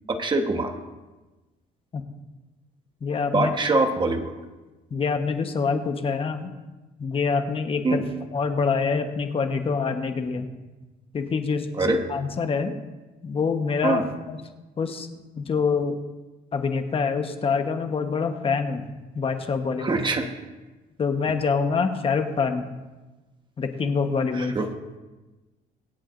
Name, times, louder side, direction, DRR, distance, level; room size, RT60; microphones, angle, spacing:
voice 1, 0.1-0.7 3.3-4.3 7.8-8.0 11.8-12.0 13.8-14.0 19.8-20.3 24.3-24.7, right 2 dB, 30° right, 5 dB, 1.2 m, -23 dB
voice 2, 3.0-3.5 4.9-6.5 7.0-8.0 8.3-10.5 11.1-12.8 13.2-14.0 14.3-14.4 14.8-15.1 15.4-16.0 16.5-18.9 19.1-20.0 21.0-22.6 23.6-24.5, left 5 dB, 35° left, 6 dB, 1.1 m, -25 dB
24.5 x 8.3 x 2.6 m, 1.2 s
cardioid pair, 110°, 17 cm